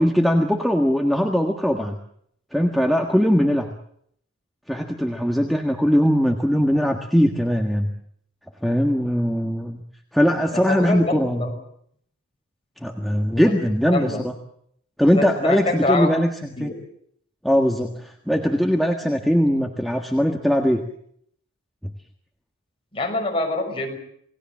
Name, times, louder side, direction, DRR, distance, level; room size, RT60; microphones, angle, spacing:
voice 1, 0.0-2.0 2.5-3.7 4.7-7.9 8.6-9.8 10.1-11.5 12.8-14.3 15.0-16.7 17.4-20.8, equal, ahead, 2 dB, 1.6 m, -20 dB
voice 2, 10.5-11.5 13.3-13.5 13.9-14.2 15.2-16.1 16.6-16.7 22.9-24.0, left 2 dB, 25° left, 2 dB, 6.1 m, -25 dB
28.5 x 19.0 x 7.4 m, 0.68 s
head